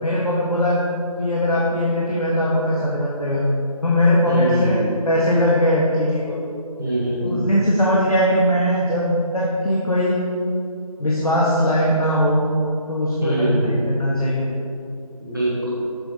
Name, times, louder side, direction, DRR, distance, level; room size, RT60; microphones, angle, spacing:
voice 1, 0.0-0.8 1.2-3.5 3.8-4.8 5.1-6.4 7.2-10.2 11.0-12.5 12.9-14.5, equal, 75° left, -5 dB, 1.3 m, -20 dB
voice 2, 4.3-4.9 6.8-7.6 13.2-13.9 15.2-15.7, right 1 dB, 35° right, -7 dB, 1.8 m, -24 dB
7.7 x 7.1 x 3.2 m, 2.5 s
figure-of-eight pair, 180°, 19 cm